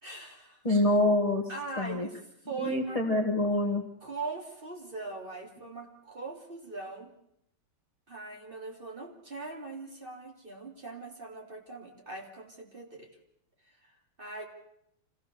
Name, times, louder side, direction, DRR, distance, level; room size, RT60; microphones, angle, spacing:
voice 1, 0.0-0.6 1.5-2.2 2.4-3.0 4.0-7.1 8.1-13.1 13.8-14.4, right 3 dB, 25° right, 1 dB, 3.0 m, -41 dB
voice 2, 0.6-1.4 1.8-2.1 2.6-3.8, left 2 dB, 20° left, 4 dB, 1.3 m, -26 dB
25.5 x 16.0 x 6.8 m, 0.77 s
omnidirectional pair, 2.2 m